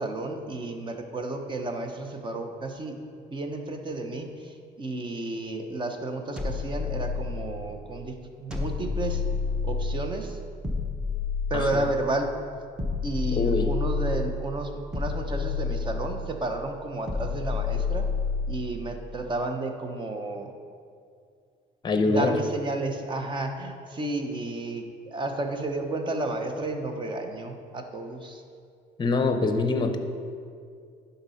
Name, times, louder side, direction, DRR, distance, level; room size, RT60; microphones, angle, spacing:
voice 1, 0.0-3.0 3.3-9.2 9.6-10.4 11.5-12.3 13.0-18.0 18.5-20.5 22.0-28.4, right 2 dB, 30° right, 5 dB, 0.9 m, -32 dB
sound 1, 6.4-7.7 8.5-10.1 10.6-12.1 12.8-14.4 14.9-16.3 17.1-18.7, left 5 dB, 5° right, 1.0 m, -29 dB
voice 2, 13.4-13.7 21.8-22.3 29.0-30.0, left 3 dB, 25° left, 7 dB, 0.8 m, -23 dB
10.5 x 4.0 x 5.6 m, 2.3 s
cardioid pair, 110°, 17 cm